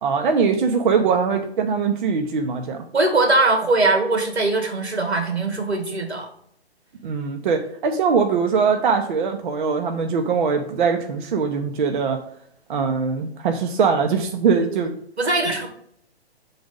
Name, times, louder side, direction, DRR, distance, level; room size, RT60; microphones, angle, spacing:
voice 1, 0.0-2.8 7.0-12.2 12.7-15.0, right 5 dB, 50° right, 4 dB, 0.8 m, -21 dB
voice 2, 2.9-6.3 15.2-15.7, right 2 dB, 90° right, 3 dB, 2.1 m, -21 dB
6.7 x 4.0 x 5.1 m, 0.66 s
hypercardioid pair, 140°, 32 cm